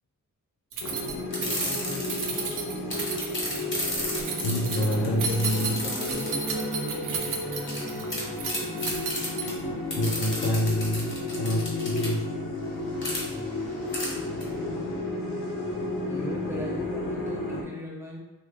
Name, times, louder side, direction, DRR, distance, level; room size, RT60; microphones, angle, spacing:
Keys jangling, 0.7-9.7, right 5 dB, 75° right, 0.6 m, -34 dB
sound 1, 0.8-17.6, left 2 dB, 80° left, 0.8 m, -33 dB
voice 1, 0.8-2.5 2.8-3.1 4.7-8.0 9.6-9.8 13.1-13.6 16.1-18.2, equal, 10° right, -4 dB, 0.5 m, -40 dB
sound 2, 1.3-2.5 2.9-6.6 7.7-7.8 8.1-8.2 8.5-9.5 9.9-12.1 13.0-13.2 13.9-14.1 14.4-14.5, left 1 dB, 35° left, 0.9 m, -32 dB
voice 2, 4.4-5.8 10.0-12.2, equal, 55° left, 2 dB, 0.4 m, -27 dB
3.2 x 2.2 x 3.3 m, 1.1 s
wide cardioid pair, 175°, 32 cm